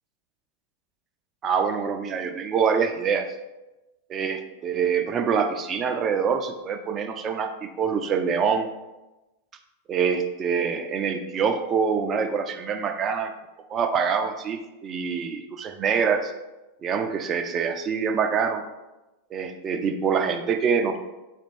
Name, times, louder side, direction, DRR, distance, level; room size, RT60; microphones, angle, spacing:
voice 1, 1.4-3.3 4.1-8.7 9.9-13.3 13.7-16.3 16.8-18.6 19.3-21.0, right 6 dB, 25° right, 6 dB, 0.5 m, -25 dB
4.3 x 2.9 x 4.2 m, 1.0 s
figure-of-eight pair, 90°, 0 cm